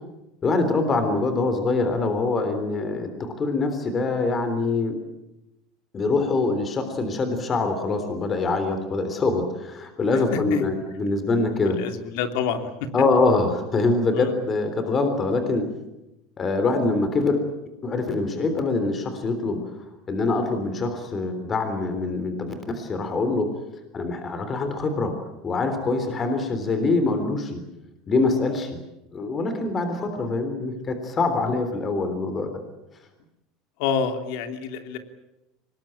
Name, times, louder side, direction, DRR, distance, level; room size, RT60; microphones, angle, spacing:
voice 1, 0.4-4.9 5.9-11.8 12.9-15.6 16.4-17.4 17.8-23.5 23.9-25.1 25.4-27.6 28.1-28.7 29.1-32.5, left 3 dB, 25° left, 7 dB, 3.5 m, -24 dB
voice 2, 11.8-12.7 14.1-14.3 33.8-35.0, left 7 dB, 70° left, 7 dB, 3.1 m, -27 dB
24.5 x 20.5 x 8.9 m, 0.91 s
cardioid pair, 145°, 0 cm